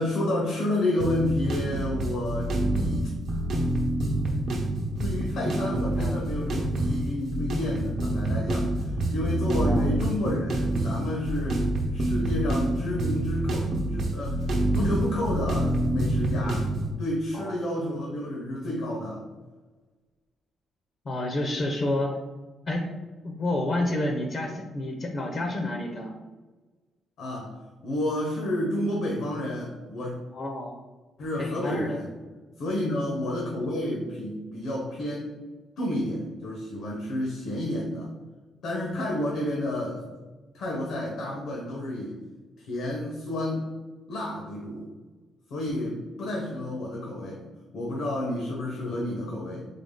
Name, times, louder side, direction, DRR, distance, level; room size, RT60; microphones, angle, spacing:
voice 1, 0.0-2.5 5.0-8.7 9.1-11.7 11.9-16.7 17.0-19.2 27.2-27.5 27.8-30.1 31.2-32.1 32.6-35.3 35.8-38.1 38.6-40.0 40.5-42.2 42.6-43.6 44.1-44.9 45.5-47.4 47.7-49.7, left 1 dB, 75° left, -2 dB, 0.9 m, -30 dB
sound 1, 1.0-16.9, right 1 dB, 60° right, 0.8 m, -27 dB
voice 2, 9.6-9.9 17.3-17.6 21.0-22.2 22.7-22.9 23.2-26.1 30.3-30.8 31.4-32.0, left 1 dB, 40° left, 3 dB, 0.6 m, -29 dB
3.8 x 3.5 x 3.7 m, 1.3 s
cardioid pair, 115°, 0 cm